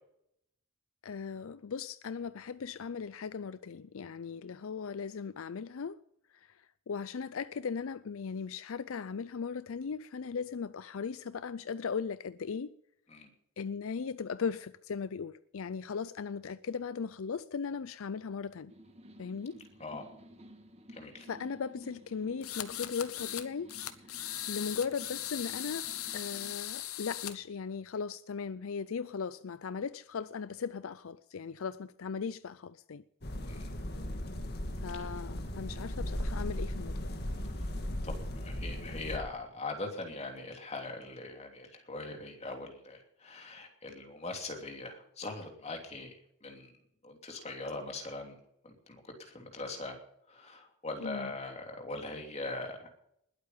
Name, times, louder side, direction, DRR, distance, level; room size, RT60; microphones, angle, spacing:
voice 1, 1.0-6.0 6.3-12.7 13.6-18.7 19.2-19.6 21.3-23.7 24.1-25.9 26.1-33.0 34.8-37.2 51.0-51.3, left 6 dB, 70° left, 0.5 m, -38 dB
sound 1, 18.7-26.6, equal, 30° right, 1.7 m, -54 dB
voice 2, 20.9-21.3 33.4-33.7 34.9-35.1 37.5-37.7 38.0-46.7 47.0-48.4 48.6-50.0 50.3-52.9, left 2 dB, 30° left, 3.0 m, -41 dB
sound 2, 22.4-23.4 23.7-27.3, left 12 dB, 85° left, 1.2 m, -39 dB
sound 3, 33.2-39.2, left 1 dB, 50° left, 2.0 m, -37 dB
20.5 x 8.5 x 5.6 m
head